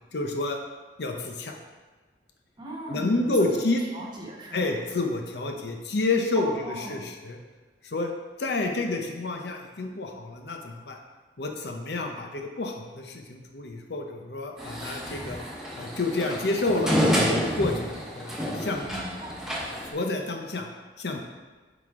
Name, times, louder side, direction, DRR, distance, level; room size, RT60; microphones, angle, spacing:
voice 1, 0.1-0.6 1.0-1.6 2.9-3.8 4.5-7.4 7.8-8.1 8.4-11.0 11.4-15.4 15.7-18.9 19.9-20.7 21.0-21.2, left 2 dB, 65° left, 3 dB, 0.7 m, -29 dB
voice 2, 2.6-3.6 3.9-4.7 6.3-7.0 18.9-19.5, right 1 dB, 25° right, -3 dB, 1.3 m, -37 dB
sound 1, 14.6-19.9, equal, 5° right, 1.1 m, -29 dB
9.2 x 4.0 x 3.6 m, 1.3 s
head